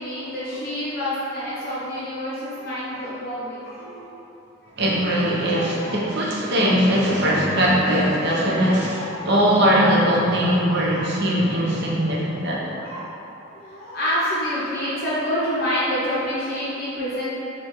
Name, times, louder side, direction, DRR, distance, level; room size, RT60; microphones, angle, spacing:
voice 1, 0.0-4.2 4.6-4.7 5.6-6.0 8.8-9.3 10.9-11.1 11.8-12.0 12.8-13.1 13.6-17.3, equal, 45° left, -9 dB, 0.6 m, -28 dB
voice 2, 4.8-12.8, equal, 55° right, -4 dB, 0.7 m, -20 dB
6.5 x 2.2 x 3.0 m, 3.0 s
head